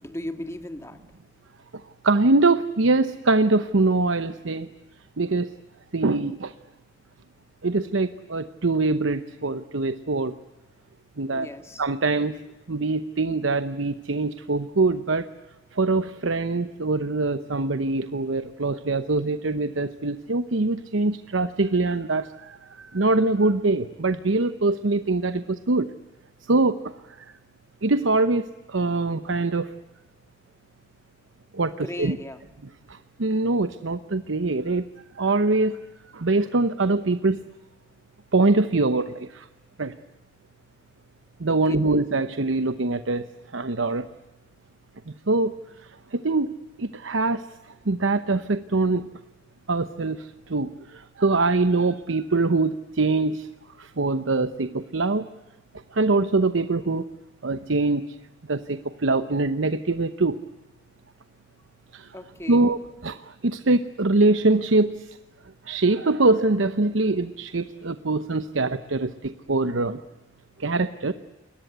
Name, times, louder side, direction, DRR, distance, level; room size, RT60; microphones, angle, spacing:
voice 1, 0.0-1.0 11.4-11.9 31.7-32.4 41.5-41.8 62.1-62.7, left 1 dB, 15° left, 8 dB, 1.8 m, -37 dB
voice 2, 2.0-4.7 5.2-5.5 5.9-6.5 7.6-10.3 11.2-11.5 11.8-12.3 12.7-15.3 15.7-25.9 26.5-26.9 27.8-29.7 31.5-32.2 33.2-34.8 35.2-35.8 36.1-37.4 38.3-39.4 39.8-39.9 41.4-43.2 43.5-44.1 45.3-45.6 46.1-46.5 46.8-47.4 47.9-49.1 49.7-53.5 53.8-55.3 55.9-57.0 57.4-58.1 58.5-60.4 61.9-62.1 62.5-63.2 63.4-65.1 65.7-70.0 70.6-71.1, right 3 dB, 80° right, 11 dB, 0.9 m, -23 dB
29.5 x 22.0 x 8.1 m, 1.1 s
head